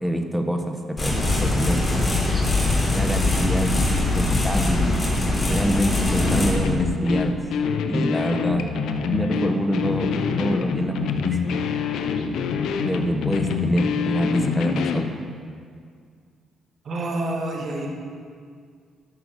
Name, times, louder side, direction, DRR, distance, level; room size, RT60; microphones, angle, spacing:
voice 1, 0.0-1.8 2.9-4.9 5.5-7.4 7.9-8.7 9.1-11.4 12.8-15.1, equal, ahead, 4 dB, 1.3 m, -25 dB
sound 1, 1.0-6.5, left 2 dB, 30° left, 3.5 m, -22 dB
sound 2, 6.3-15.1, left 6 dB, 80° left, 0.8 m, -26 dB
voice 2, 16.9-17.9, right 2 dB, 50° right, -1 dB, 2.4 m, -28 dB
15.0 x 6.0 x 6.7 m, 2.1 s
cardioid pair, 90°, 0 cm